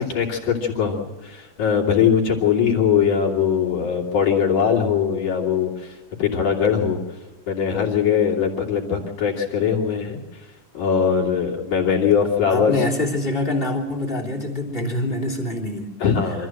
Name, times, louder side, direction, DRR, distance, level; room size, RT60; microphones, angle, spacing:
voice 1, 0.0-7.0 7.5-10.5 10.7-12.7 16.0-16.5, left 7 dB, 60° left, -2 dB, 4.1 m, -21 dB
voice 2, 12.5-15.9, left 1 dB, 15° left, 0 dB, 2.9 m, -25 dB
26.0 x 14.0 x 7.7 m, 1.2 s
omnidirectional pair, 3.7 m